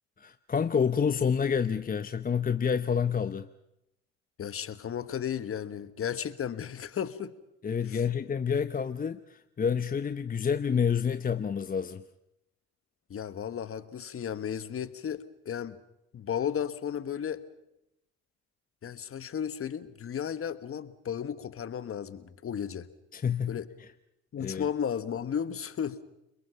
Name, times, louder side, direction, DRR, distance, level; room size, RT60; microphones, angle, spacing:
voice 1, 0.2-3.5 7.6-12.0 23.1-23.9 24.4-24.7, left 7 dB, 25° left, 10 dB, 0.8 m, -28 dB
voice 2, 4.4-7.3 7.9-8.0 13.1-15.8 16.1-17.4 18.8-22.9 23.5-23.7 24.3-26.0, left 8 dB, 40° left, 13 dB, 1.5 m, -34 dB
29.5 x 21.5 x 5.7 m, 0.86 s
hypercardioid pair, 65°, 33 cm